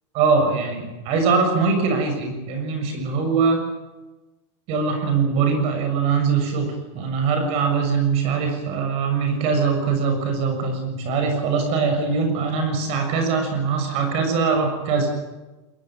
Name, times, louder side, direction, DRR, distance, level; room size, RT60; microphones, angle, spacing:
voice 1, 0.1-3.6 4.7-15.2, right 5 dB, 45° right, 5 dB, 6.9 m, -22 dB
21.5 x 21.5 x 8.9 m, 1.1 s
supercardioid pair, 150°, 15 cm